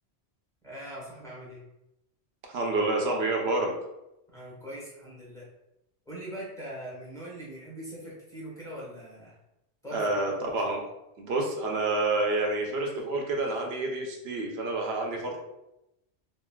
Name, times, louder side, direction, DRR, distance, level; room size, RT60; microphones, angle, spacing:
voice 1, 0.6-1.6 4.3-5.5 6.1-9.4 9.8-10.4, right 1 dB, 5° left, -7 dB, 0.9 m, -41 dB
voice 2, 2.5-3.7 9.9-10.8 11.2-15.4, right 2 dB, 75° right, 1 dB, 0.9 m, -28 dB
3.1 x 2.6 x 2.2 m, 0.89 s
omnidirectional pair, 1.1 m